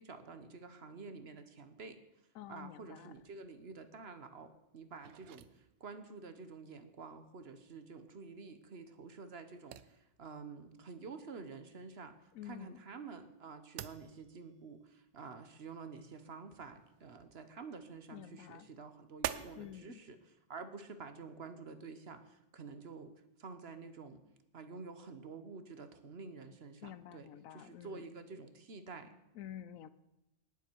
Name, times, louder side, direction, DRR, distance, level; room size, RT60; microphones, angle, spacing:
voice 1, 0.0-2.0 2.5-12.1 12.4-24.2 24.5-29.2, right 4 dB, 50° right, 9 dB, 1.1 m, -49 dB
voice 2, 2.3-3.1 12.3-12.8 18.1-18.7 19.6-20.0 26.8-28.0 29.3-29.9, left 11 dB, 80° left, 16 dB, 1.0 m, -49 dB
sound 1, 3.1-19.8, right 11 dB, 85° right, 1.0 m, -50 dB
19.0 x 7.4 x 4.6 m, 0.91 s
omnidirectional pair, 1.4 m